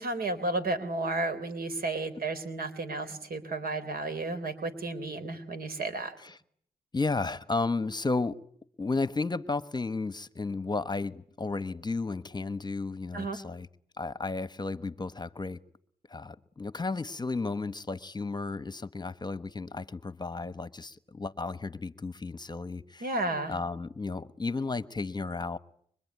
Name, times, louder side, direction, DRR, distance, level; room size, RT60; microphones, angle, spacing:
voice 1, 0.0-6.1 13.1-13.4 23.0-23.5, right 2 dB, 70° right, 3.7 m, -32 dB
voice 2, 6.9-8.4 8.8-13.7 14.0-15.6 16.1-23.1 23.5-25.6, left 3 dB, 25° left, 1.2 m, -33 dB
24.5 x 23.0 x 9.5 m
cardioid pair, 65°, 16 cm